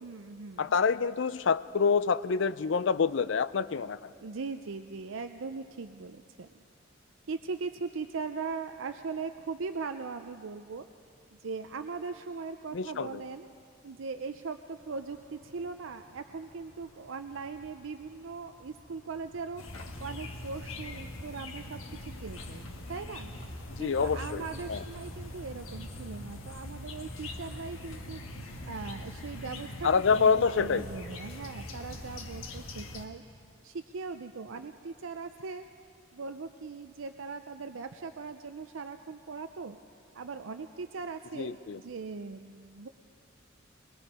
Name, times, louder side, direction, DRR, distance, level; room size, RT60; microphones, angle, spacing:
voice 1, 0.0-0.7 4.2-6.5 7.3-10.9 11.4-13.5 13.8-19.6 20.0-21.8 22.2-23.3 23.8-28.2 28.7-33.2 33.6-35.6 36.1-39.8 40.1-42.9, right 4 dB, 75° right, 8 dB, 0.5 m, -39 dB
voice 2, 0.6-4.1 12.7-13.2 23.8-24.4 24.7-24.8 29.8-30.9 41.3-41.8, left 5 dB, 65° left, 16 dB, 0.4 m, -27 dB
sound 1, 14.8-31.8, left 1 dB, 10° left, 6.1 m, -54 dB
sound 2, 19.6-33.1, left 1 dB, 85° left, 1.5 m, -42 dB
23.5 x 20.5 x 5.3 m, 2.4 s
head